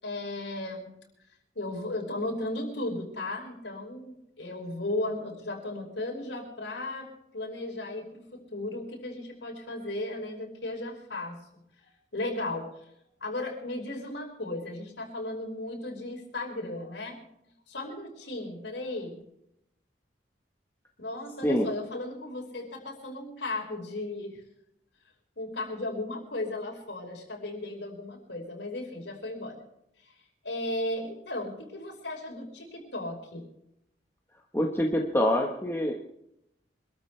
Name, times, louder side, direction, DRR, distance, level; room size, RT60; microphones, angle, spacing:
voice 1, 0.0-0.9 1.5-11.6 12.1-12.7 13.2-17.2 17.7-19.2 21.0-24.4 25.4-29.6 30.0-30.1 30.4-33.4, left 2 dB, 80° left, 1 dB, 5.2 m, -35 dB
voice 2, 34.5-35.9, left 1 dB, 15° left, 0 dB, 1.3 m, -25 dB
26.0 x 13.5 x 3.3 m, 0.79 s
head